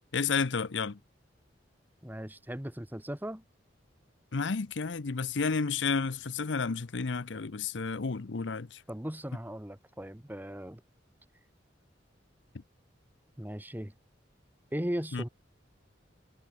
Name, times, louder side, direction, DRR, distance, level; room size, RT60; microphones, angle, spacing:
voice 1, 0.1-1.0 4.3-8.8 15.1-15.2, left 5 dB, 75° left, 0.7 m, -31 dB
voice 2, 2.0-3.4 8.9-10.8 13.4-13.9 14.7-15.3, equal, 10° right, 1.4 m, -37 dB
head